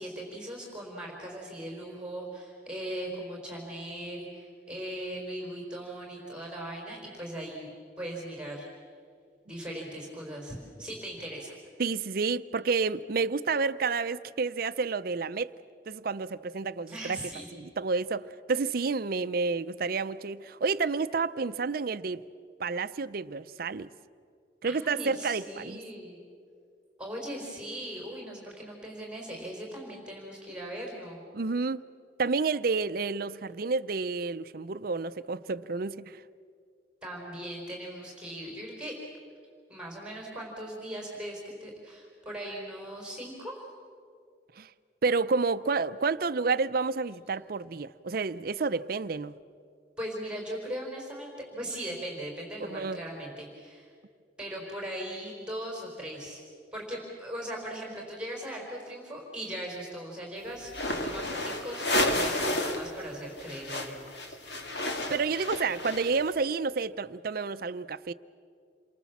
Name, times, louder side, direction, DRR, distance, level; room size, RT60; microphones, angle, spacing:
voice 1, 0.0-8.7 9.5-11.5 16.9-17.5 24.7-26.2 27.0-31.2 37.0-39.0 39.7-43.6 50.0-53.9 54.4-56.4 56.7-60.7 61.0-64.0 64.3-64.6, right 1 dB, 5° right, 4.3 m, -39 dB
voice 2, 11.8-15.5 15.9-17.2 17.5-22.2 22.6-23.9 24.6-25.8 31.3-31.8 32.2-36.2 44.6-44.7 45.0-49.3 52.6-53.0 65.1-68.1, right 4 dB, 55° right, 0.5 m, -30 dB
sound 1, 60.7-62.9 63.1-66.3, left 1 dB, 70° left, 2.3 m, -31 dB
28.5 x 23.0 x 7.2 m
head